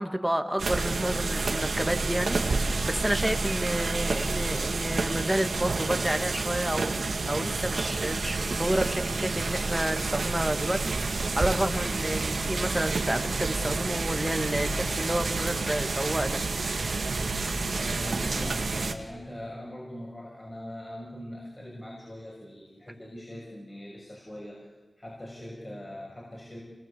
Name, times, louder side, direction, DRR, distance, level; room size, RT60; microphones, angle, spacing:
voice 1, 0.0-16.4, right 1 dB, 10° right, 6 dB, 1.9 m, -30 dB
sound 1, 0.6-18.9, right 3 dB, 85° right, 2.0 m, -29 dB
voice 2, 17.7-24.7 25.0-26.6, equal, 30° left, -4 dB, 6.4 m, -41 dB
27.0 x 21.0 x 8.4 m, 1.2 s
wide cardioid pair, 75°, 0 cm